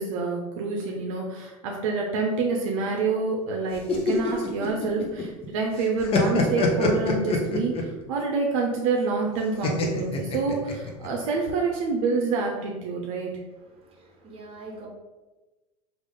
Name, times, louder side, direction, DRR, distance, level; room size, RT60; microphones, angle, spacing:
voice 1, 0.0-13.4, right 4 dB, 70° right, 0 dB, 0.6 m, -27 dB
sound 1, 3.7-5.5 5.8-8.0 9.6-11.1, left 3 dB, 30° left, 0.6 m, -25 dB
voice 2, 13.7-14.9, right 2 dB, 30° right, -1 dB, 1.2 m, -44 dB
3.5 x 2.5 x 3.4 m, 1.2 s
supercardioid pair, 110°, 18 cm